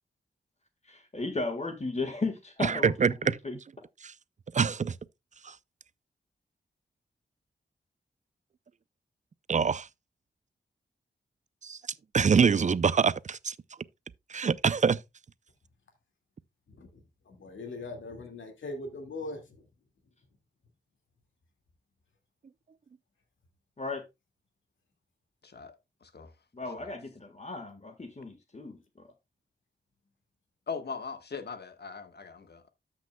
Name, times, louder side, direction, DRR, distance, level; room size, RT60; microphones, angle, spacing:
voice 1, 0.9-3.6 23.8-24.0 26.5-29.1, left 3 dB, 35° left, 1.7 m, -35 dB
voice 2, 2.6-3.4 4.0-4.1 4.5-4.9 5.4-5.5 9.5-9.9 11.6-11.8 12.1-13.5 14.3-15.0, right 6 dB, 40° right, 0.5 m, -25 dB
voice 3, 16.7-19.7, left 2 dB, 90° left, 2.1 m, -41 dB
voice 4, 25.4-25.7 26.0-26.3 26.8-26.9 30.7-32.7, left 5 dB, 60° left, 1.4 m, -40 dB
13.5 x 6.0 x 2.2 m
cardioid pair, 55°, 19 cm